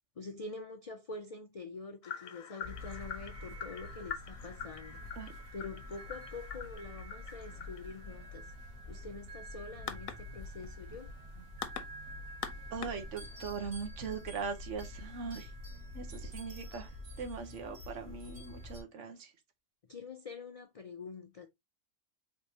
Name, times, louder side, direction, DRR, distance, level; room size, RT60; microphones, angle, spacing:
voice 1, 0.2-5.0 5.5-8.5 8.9-11.1 19.9-21.5, left 3 dB, 65° left, 0.3 m, -46 dB
sound 1, 2.0-13.5, left 8 dB, 85° left, 1.1 m, -46 dB
sound 2, 2.6-18.8, left 1 dB, 85° right, 2.2 m, -47 dB
voice 2, 12.7-15.5 15.9-19.3, right 5 dB, 65° right, 1.2 m, -40 dB
4.7 x 3.3 x 2.8 m
omnidirectional pair, 1.4 m